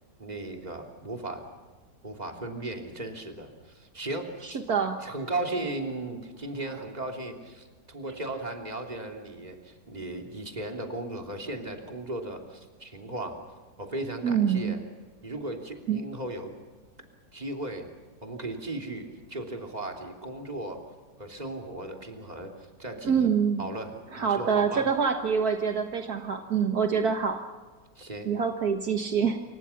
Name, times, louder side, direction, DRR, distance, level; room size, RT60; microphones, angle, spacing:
voice 1, 0.2-1.5 2.0-4.6 5.0-13.4 13.8-14.8 15.2-16.5 17.3-17.9 18.2-20.8 21.2-22.5 22.8-23.3 23.6-24.9 27.9-28.3, right 2 dB, 25° right, 2 dB, 3.2 m, -36 dB
voice 2, 4.4-5.0 14.2-14.7 15.9-16.0 23.0-23.6 24.1-27.4 28.2-29.4, right 6 dB, 65° right, 5 dB, 1.8 m, -25 dB
28.0 x 25.5 x 5.9 m, 1.4 s
omnidirectional pair, 1.8 m